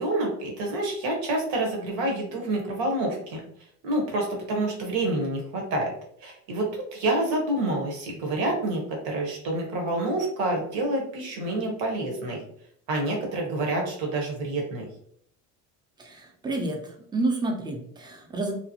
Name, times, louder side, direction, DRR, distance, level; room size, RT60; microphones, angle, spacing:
voice 1, 0.0-3.4 3.8-5.9 6.2-12.4 12.9-14.8, right 2 dB, 70° right, 0 dB, 1.2 m, -28 dB
voice 2, 16.0-18.5, right 2 dB, 10° right, 1 dB, 0.6 m, -29 dB
2.9 x 2.0 x 2.7 m, 0.67 s
supercardioid pair, 75°, 44 cm